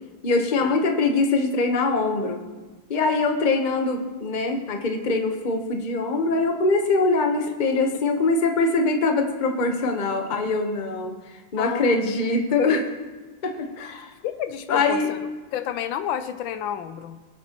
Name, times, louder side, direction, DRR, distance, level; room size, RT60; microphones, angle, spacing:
voice 1, 0.2-2.4 2.9-11.1 11.5-12.8 13.4-14.1 14.7-15.1, left 3 dB, 35° left, 4 dB, 0.8 m, -23 dB
voice 2, 11.6-12.0 14.2-17.2, left 9 dB, 75° left, 10 dB, 1.3 m, -31 dB
23.0 x 8.3 x 3.0 m, 1.3 s
omnidirectional pair, 2.2 m